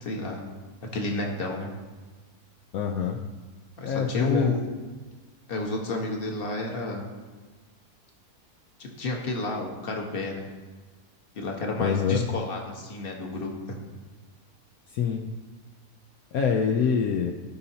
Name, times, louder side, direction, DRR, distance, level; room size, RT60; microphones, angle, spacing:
voice 1, 0.0-0.4 0.9-1.7 3.8-4.6 5.5-7.0 8.8-10.5 11.4-13.8, left 2 dB, 40° left, 1 dB, 1.3 m, -31 dB
voice 2, 2.7-3.2 3.8-4.6 11.8-12.3 14.9-15.3 16.3-17.3, left 7 dB, 70° left, 2 dB, 1.1 m, -25 dB
15.5 x 5.6 x 2.8 m, 1.3 s
omnidirectional pair, 1.7 m